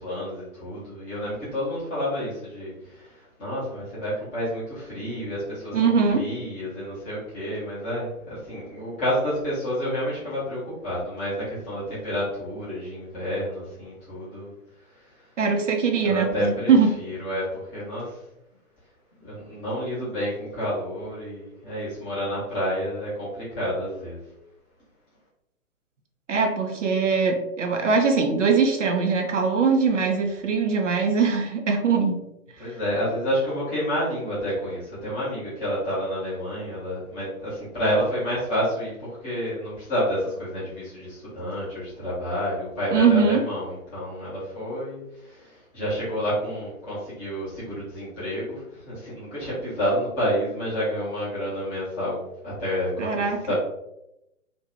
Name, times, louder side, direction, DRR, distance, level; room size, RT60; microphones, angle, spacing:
voice 1, 0.0-14.5 16.0-18.2 19.2-24.2 32.6-52.2 52.4-53.5, equal, 10° left, -10 dB, 0.6 m, -29 dB
voice 2, 5.7-6.2 15.4-16.9 26.3-32.2 42.9-43.4 53.0-53.5, right 5 dB, 60° right, 4 dB, 0.5 m, -21 dB
2.5 x 2.1 x 2.9 m, 0.85 s
figure-of-eight pair, 130°, 43 cm